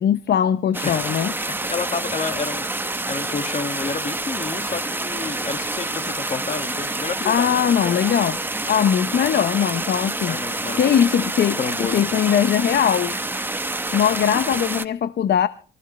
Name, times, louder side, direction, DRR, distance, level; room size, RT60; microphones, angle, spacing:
voice 1, 0.0-1.3 7.3-8.4 8.7-10.4 10.7-13.1 13.9-15.5, left 9 dB, 55° left, 0.7 m, -20 dB
sound 1, 0.7-14.9, right 2 dB, 10° right, 0.8 m, -27 dB
voice 2, 0.8-2.7 3.1-8.0 10.2-10.9 11.6-12.1, left 5 dB, 35° left, 1.8 m, -30 dB
25.5 x 14.5 x 3.2 m
cardioid pair, 90°, 20 cm